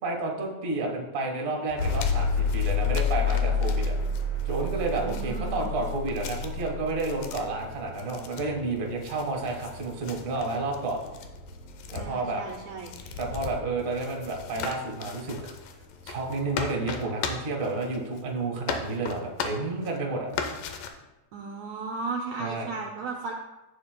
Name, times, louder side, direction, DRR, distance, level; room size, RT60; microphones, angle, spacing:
voice 1, 0.0-4.0 4.4-11.0 11.9-12.4 13.2-15.5 16.0-20.3 22.4-22.7, right 3 dB, 40° right, 1 dB, 1.2 m, -31 dB
sound 1, 1.7-18.4 18.7-20.0 20.3-20.9, left 6 dB, 85° left, 2.4 m, -39 dB
sound 2, 1.8-17.7, left 4 dB, 65° left, 2.2 m, -32 dB
voice 2, 5.0-5.7 12.0-12.9 21.3-23.3, right 4 dB, 75° right, 0 dB, 1.7 m, -35 dB
13.5 x 7.8 x 2.2 m, 1.0 s
omnidirectional pair, 3.8 m